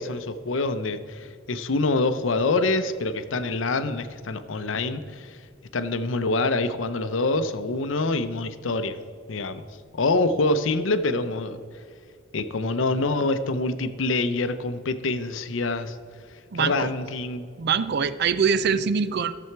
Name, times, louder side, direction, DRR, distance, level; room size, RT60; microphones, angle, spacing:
voice 1, 0.0-5.4 5.7-9.0 9.3-9.6 9.9-11.6 12.3-16.0 16.5-17.4, left 3 dB, 70° left, 11 dB, 0.6 m, -26 dB
voice 2, 16.5-16.9 17.6-19.4, right 6 dB, 55° right, 14 dB, 0.4 m, -23 dB
14.0 x 7.0 x 4.5 m, 2.1 s
head